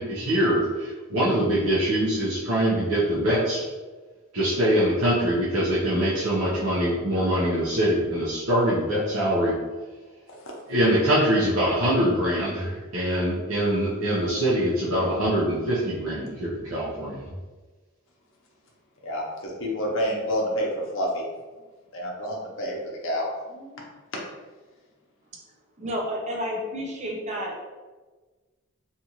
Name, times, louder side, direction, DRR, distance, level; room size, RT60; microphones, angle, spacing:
voice 1, 0.0-3.7 4.3-9.5 10.7-17.2, right 1 dB, 90° right, -7 dB, 0.7 m, -23 dB
voice 2, 19.0-21.2 21.9-22.8 23.0-24.0, equal, 65° left, -1 dB, 0.7 m, -29 dB
voice 3, 25.8-27.6, equal, 35° right, -1 dB, 0.5 m, -30 dB
2.6 x 2.4 x 2.9 m, 1.3 s
head